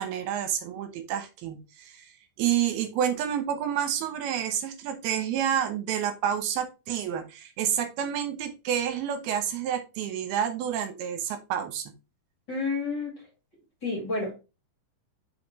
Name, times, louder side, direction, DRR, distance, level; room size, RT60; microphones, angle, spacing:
voice 1, 0.0-2.1 2.4-11.8, right 9 dB, 75° right, 8 dB, 2.7 m, -29 dB
voice 2, 12.5-13.1 13.8-14.4, left 3 dB, 35° left, -1 dB, 2.3 m, -29 dB
5.5 x 5.1 x 4.0 m, 0.28 s
omnidirectional pair, 4.6 m